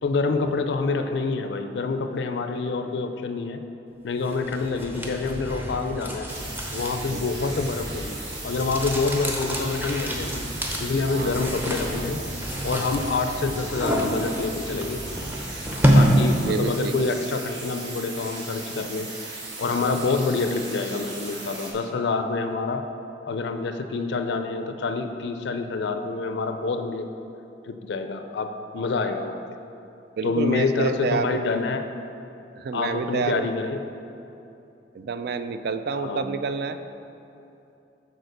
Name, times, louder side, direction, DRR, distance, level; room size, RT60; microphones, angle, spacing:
voice 1, 0.0-3.6 4.0-6.3 6.7-8.2 8.4-10.4 10.8-12.2 12.6-15.0 15.9-19.1 19.6-22.8 23.3-27.1 27.6-29.4 30.2-31.9 32.7-33.8 35.9-36.2, left 4 dB, 75° left, 7 dB, 0.4 m, -27 dB
sound 1, 4.2-16.6, equal, 10° right, 0.7 m, -27 dB
sound 2, 6.3-21.7, right 2 dB, 80° right, 1.3 m, -37 dB
voice 2, 11.1-11.5 16.4-16.9 19.7-19.9 30.2-31.4 32.6-33.5 34.9-36.8, right 4 dB, 60° right, 10 dB, 0.4 m, -28 dB
6.5 x 4.3 x 6.5 m, 2.8 s
head